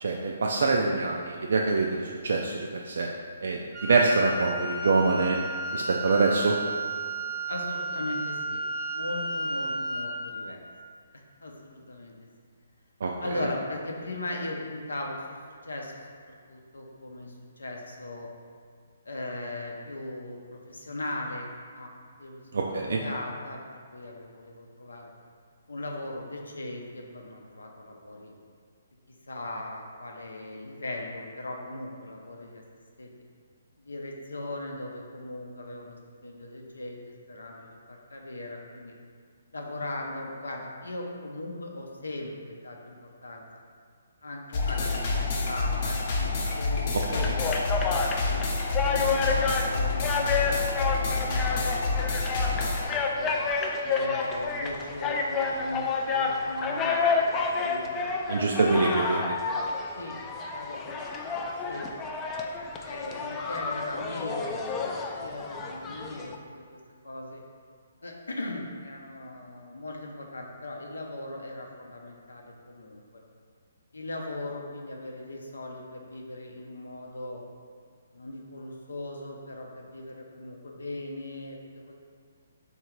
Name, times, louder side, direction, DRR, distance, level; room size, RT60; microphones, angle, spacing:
voice 1, 0.0-3.1 3.4-5.4 5.7-6.5 13.0-13.1 22.5-23.0 58.3-59.3, right 3 dB, 65° right, -1 dB, 0.4 m, -25 dB
Wind instrument woodwind instrument, 3.7-10.4, right 2 dB, 20° right, 0.7 m, -33 dB
voice 2, 7.5-8.6 8.9-10.6 11.4-12.2 13.2-15.4 15.6-16.2 16.5-18.3 19.0-21.9 22.2-23.6 23.9-25.1 25.7-28.3 29.3-32.6 33.0-33.1 33.8-38.9 39.5-43.4 44.2-48.0 48.3-48.4 48.9-53.3 53.8-58.0 58.6-59.0 59.9-60.2 60.5-60.9 61.2-62.1 62.8-66.8 67.0-67.4 68.0-73.2 73.9-77.4 78.1-81.6 81.9-82.0, left 1 dB, 85° left, 0 dB, 0.7 m, -38 dB
sound 1, 44.5-52.9, left 3 dB, 45° left, 0.7 m, -28 dB
sound 2, 47.1-66.3, left 4 dB, 20° left, 0.3 m, -30 dB
3.7 x 2.8 x 4.5 m, 2.1 s
hypercardioid pair, 140°, 0 cm